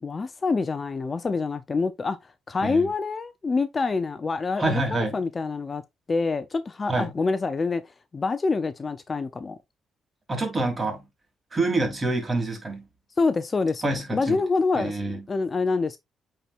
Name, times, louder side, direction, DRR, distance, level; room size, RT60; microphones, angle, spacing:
voice 1, 0.0-2.2 2.5-5.8 6.1-7.8 8.1-9.6 13.2-16.0, left 4 dB, 30° left, 0.6 m, -26 dB
voice 2, 4.6-5.2 6.9-7.2 10.3-11.0 11.5-12.9 13.8-14.4 14.7-15.2, right 2 dB, 30° right, 3.2 m, -27 dB
8.9 x 4.5 x 2.5 m
cardioid pair, 90°, 0 cm